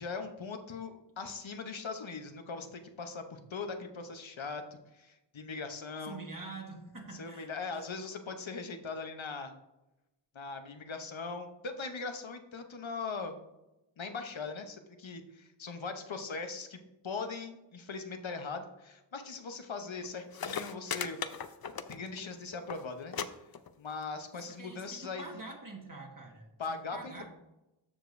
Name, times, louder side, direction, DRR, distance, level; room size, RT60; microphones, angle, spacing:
voice 1, 0.0-6.2 7.1-9.5 10.3-13.3 14.0-21.2 21.9-23.1 23.8-25.4 26.6-27.2, left 4 dB, 75° left, 6 dB, 0.9 m, -40 dB
voice 2, 6.0-7.8 24.6-27.3, right 3 dB, 45° right, 0 dB, 1.5 m, -46 dB
sound 1, 20.0-20.1 20.3-22.3 22.5-22.8 23.1-23.3 23.5-24.0 24.9-25.0, left 7 dB, 50° left, 0.5 m, -37 dB
13.5 x 4.9 x 2.6 m, 0.95 s
wide cardioid pair, 45°, 47 cm